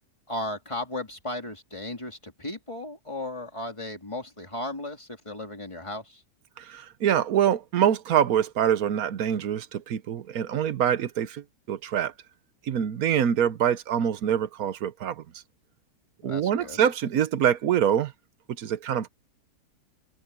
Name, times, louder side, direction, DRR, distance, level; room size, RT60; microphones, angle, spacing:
voice 1, 0.3-6.2 16.2-16.8, left 1 dB, 15° left, 3.0 m, -35 dB
voice 2, 6.6-12.1 12.6-15.2 16.2-18.1 18.6-19.1, right 9 dB, 60° right, 1.3 m, -25 dB
omnidirectional pair, 1.8 m